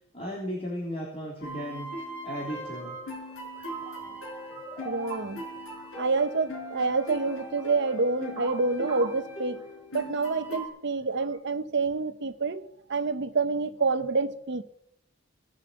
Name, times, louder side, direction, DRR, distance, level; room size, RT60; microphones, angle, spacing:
voice 1, 0.1-1.9 2.2-2.9, equal, 30° left, 3.5 m, -35 dB
sound 1, 1.4-10.7, equal, 70° left, 5.2 m, -40 dB
sound 2, 2.3-11.4, right 6 dB, 20° right, 3.1 m, -45 dB
voice 2, 4.8-5.4 6.0-9.7 9.9-12.6 12.9-14.6, right 3 dB, 60° right, 0.9 m, -27 dB
18.0 x 7.4 x 7.5 m
head